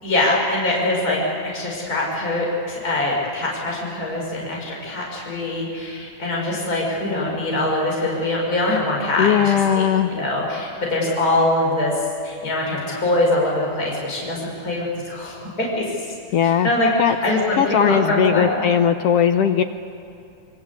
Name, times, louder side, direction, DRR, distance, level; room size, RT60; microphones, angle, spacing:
voice 1, 0.0-11.9 12.2-15.9 16.4-16.9 17.2-18.6, left 2 dB, 25° left, -3 dB, 5.8 m, -23 dB
voice 2, 9.1-10.1 16.3-16.7 17.0-17.2 17.6-19.6, left 8 dB, 75° left, 7 dB, 1.4 m, -18 dB
27.0 x 24.0 x 8.4 m, 2.7 s
omnidirectional pair, 3.6 m